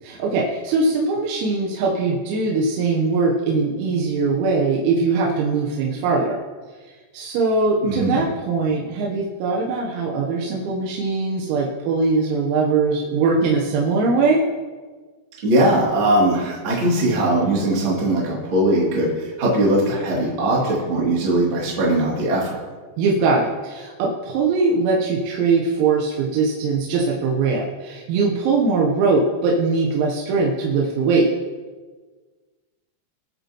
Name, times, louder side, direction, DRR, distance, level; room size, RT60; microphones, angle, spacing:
voice 1, 0.0-6.4 7.1-14.4 23.0-31.3, right 4 dB, 85° right, -2 dB, 3.9 m, -21 dB
voice 2, 7.8-8.2 15.4-22.6, right 1 dB, 30° right, -5 dB, 2.6 m, -20 dB
22.0 x 8.2 x 3.0 m, 1.4 s
omnidirectional pair, 6.0 m